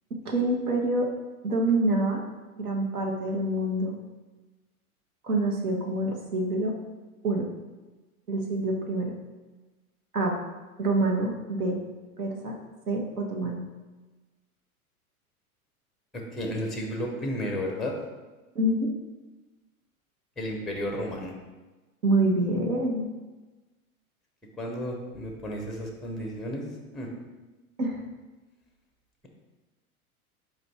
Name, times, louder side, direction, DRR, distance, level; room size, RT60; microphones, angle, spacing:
voice 1, 0.2-1.1 1.4-2.2 2.6-4.0 5.2-6.7 7.2-7.5 8.3-9.1 10.1-10.3 10.8-11.8 12.2-12.5 12.9-13.6 18.5-18.9 22.0-23.1 27.8-28.0, right 2 dB, 75° right, 0 dB, 0.9 m, -26 dB
voice 2, 16.1-18.0 20.4-21.3 24.6-26.6 26.9-27.1, equal, ahead, 2 dB, 0.5 m, -33 dB
4.5 x 2.5 x 4.4 m, 1.2 s
figure-of-eight pair, 90°, 44 cm